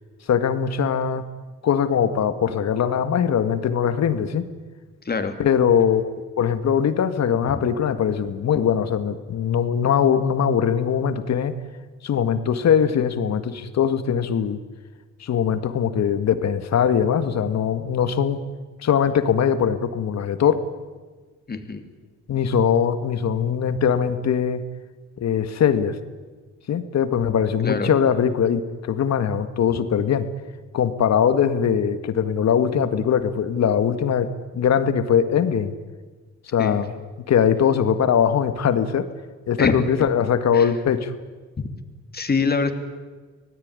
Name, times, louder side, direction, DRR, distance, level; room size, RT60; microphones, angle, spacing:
voice 1, 0.3-1.3 1.6-4.5 5.4-6.1 6.4-11.5 12.0-14.6 15.2-18.4 18.8-20.6 22.3-24.6 25.2-26.0 26.7-30.3 30.7-35.7 36.5-36.9 37.3-39.1 39.5-41.1, left 8 dB, 60° left, 11 dB, 1.9 m, -21 dB
voice 2, 5.0-5.4 7.5-7.6 21.5-21.8 27.6-27.9 36.6-36.8 39.6-39.8 40.5-40.7 42.1-42.7, left 4 dB, 30° left, 7 dB, 2.9 m, -24 dB
25.0 x 18.5 x 9.8 m, 1.4 s
cardioid pair, 90°, 30 cm